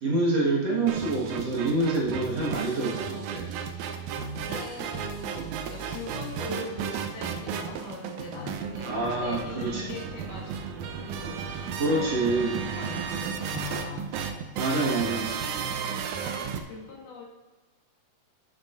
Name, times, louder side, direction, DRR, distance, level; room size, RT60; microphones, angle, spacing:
voice 1, 0.0-3.6 8.8-10.0 11.8-12.6 14.6-15.8, right 2 dB, 50° right, -4 dB, 2.4 m, -27 dB
sound 1, 0.9-16.6, right 7 dB, 75° right, 1.8 m, -34 dB
voice 2, 4.4-14.2 16.2-17.3, left 2 dB, 65° left, -4 dB, 3.3 m, -41 dB
12.5 x 9.7 x 2.6 m, 1.3 s
omnidirectional pair, 4.1 m